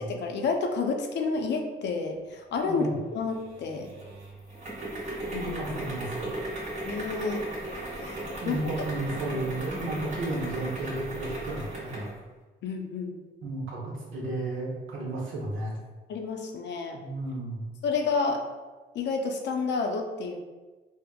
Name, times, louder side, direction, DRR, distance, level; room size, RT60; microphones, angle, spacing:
voice 1, 0.0-3.9 5.3-5.6 6.9-7.5 8.0-8.2 8.5-8.6 12.6-13.2 16.1-17.0 17.8-18.4 18.9-20.4, left 4 dB, 60° left, 4 dB, 0.5 m, -30 dB
voice 2, 2.6-2.9 5.3-6.3 8.4-12.1 13.4-15.8 16.9-17.6, right 2 dB, 80° right, -4 dB, 0.8 m, -33 dB
sound 1, 3.4-12.2, right 1 dB, 35° right, 1.0 m, -37 dB
3.4 x 2.0 x 2.2 m, 1.2 s
cardioid pair, 90°, 20 cm